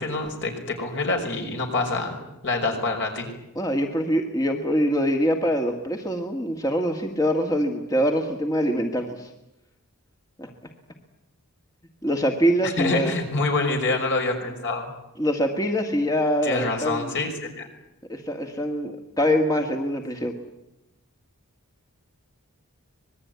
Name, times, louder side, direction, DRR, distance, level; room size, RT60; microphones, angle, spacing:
voice 1, 0.0-2.2 2.4-3.3 12.6-14.9 16.4-17.7, left 3 dB, 55° left, 3 dB, 5.6 m, -26 dB
voice 2, 3.6-9.3 10.4-10.5 12.0-13.2 15.2-17.1 18.1-18.9 19.2-20.3, equal, 15° left, 3 dB, 1.8 m, -24 dB
25.5 x 20.5 x 9.5 m, 0.88 s
head